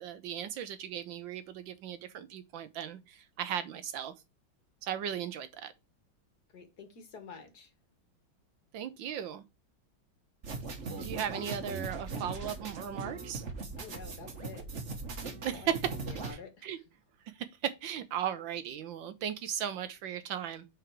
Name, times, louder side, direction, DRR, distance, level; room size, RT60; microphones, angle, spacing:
voice 1, 0.0-4.1 4.8-5.7 8.7-9.4 11.0-13.4 15.4-15.9 16.3-16.8 17.3-20.6, right 9 dB, 75° right, 1.3 m, -37 dB
voice 2, 6.5-7.7 13.8-14.7 15.5-15.8 16.1-16.7, left 5 dB, 50° left, 1.8 m, -48 dB
sound 1, 10.4-16.3, right 4 dB, 40° right, 1.3 m, -39 dB
5.0 x 4.6 x 5.9 m
omnidirectional pair, 2.3 m